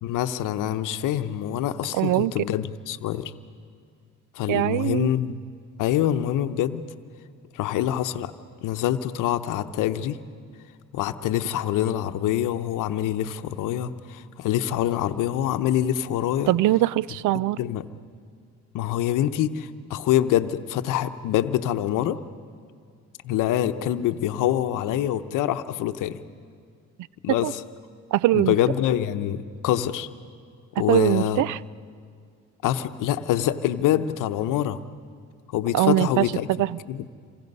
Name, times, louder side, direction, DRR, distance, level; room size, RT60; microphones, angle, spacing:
voice 1, 0.0-3.3 4.4-5.4 5.8-6.8 7.5-8.3 8.6-10.2 10.9-16.5 17.6-17.9 18.7-22.2 23.2-26.2 27.2-27.6 28.3-30.1 30.8-31.4 32.6-34.8 35.5-36.5 36.9-37.1, left 11 dB, 85° left, 10 dB, 0.9 m, -25 dB
voice 2, 1.9-2.4 4.5-5.1 16.5-17.6 27.3-27.5 28.1-28.6 30.8-31.6 35.7-36.8, right 15 dB, 75° right, 22 dB, 0.5 m, -22 dB
27.5 x 24.5 x 5.4 m, 2.2 s
supercardioid pair, 65°, 31 cm